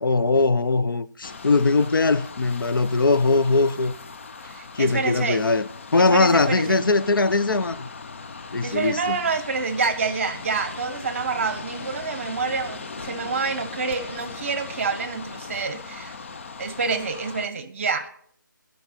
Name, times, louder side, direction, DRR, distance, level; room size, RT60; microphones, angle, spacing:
voice 1, 0.0-3.9 4.7-7.9 8.5-9.2, left 3 dB, 85° left, 0.6 m, -21 dB
sound 1, 1.2-17.5, left 4 dB, 35° left, 0.4 m, -39 dB
voice 2, 4.5-5.4 6.0-6.9 8.6-16.2 16.6-18.1, right 4 dB, 35° right, 0.9 m, -27 dB
14.5 x 5.3 x 5.7 m
hypercardioid pair, 170°, 11 cm